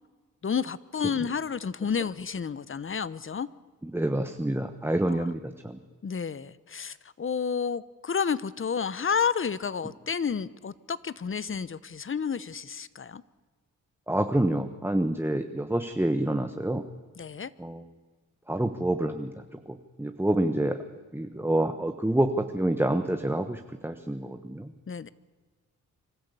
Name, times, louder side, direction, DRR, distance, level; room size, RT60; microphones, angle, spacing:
voice 1, 0.4-3.5 5.1-5.3 6.0-13.2 17.2-17.5 24.9-25.1, left 6 dB, 40° left, 18 dB, 0.9 m, -30 dB
voice 2, 3.8-5.8 14.1-16.8 17.6-17.8 18.5-19.3 19.7-20.8 21.1-24.7, right 1 dB, 5° right, 7 dB, 1.1 m, -27 dB
25.5 x 13.0 x 8.4 m, 1.4 s
cardioid pair, 65°, 32 cm